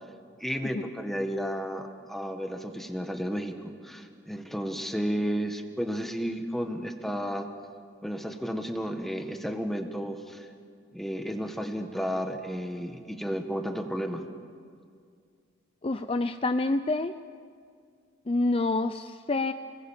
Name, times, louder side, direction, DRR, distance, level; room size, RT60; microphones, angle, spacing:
voice 1, 0.4-7.5 8.0-10.5 10.9-14.2, equal, ahead, 5 dB, 1.7 m, -32 dB
voice 2, 15.8-17.1 18.3-19.5, left 2 dB, 30° left, 9 dB, 0.5 m, -27 dB
29.5 x 20.5 x 7.5 m, 2.2 s
head